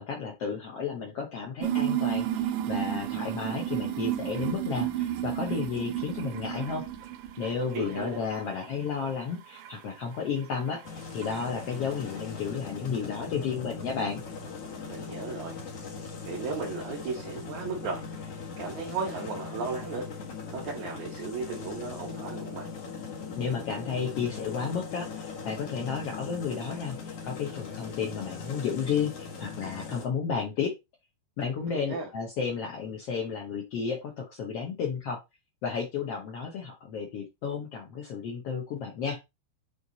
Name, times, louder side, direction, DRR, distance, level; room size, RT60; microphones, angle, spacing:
voice 1, 0.0-6.8 7.4-10.8 11.1-14.2 23.4-30.7 31.4-35.2 35.6-39.2, left 6 dB, 80° left, 1.3 m, -32 dB
sound 1, 1.6-8.0 8.3-8.9 9.6-9.7 10.6-10.7 11.2-11.4, right 12 dB, 80° right, 1.9 m, -31 dB
voice 2, 7.7-8.2 14.9-15.6 16.2-18.0 18.6-20.1 20.5-22.7 31.7-32.1, right 4 dB, 60° right, 2.5 m, -35 dB
sound 2, 10.8-30.1, left 5 dB, 55° left, 1.9 m, -40 dB
7.9 x 3.3 x 3.9 m
omnidirectional pair, 4.3 m